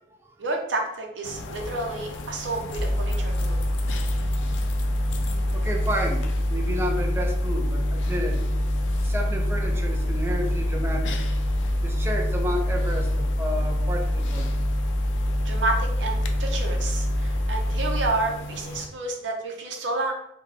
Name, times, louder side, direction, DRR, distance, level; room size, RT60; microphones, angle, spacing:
voice 1, 0.4-3.6 15.4-20.1, right 2 dB, 85° right, 2 dB, 0.7 m, -30 dB
sound 1, 1.2-18.9, left 1 dB, 90° left, 0.4 m, -36 dB
sound 2, 2.7-18.1, left 1 dB, 30° left, 0.8 m, -25 dB
voice 2, 5.5-8.4 9.0-11.2 11.8-14.5, equal, 15° right, 2 dB, 0.4 m, -31 dB
3.3 x 2.2 x 3.6 m, 0.80 s
head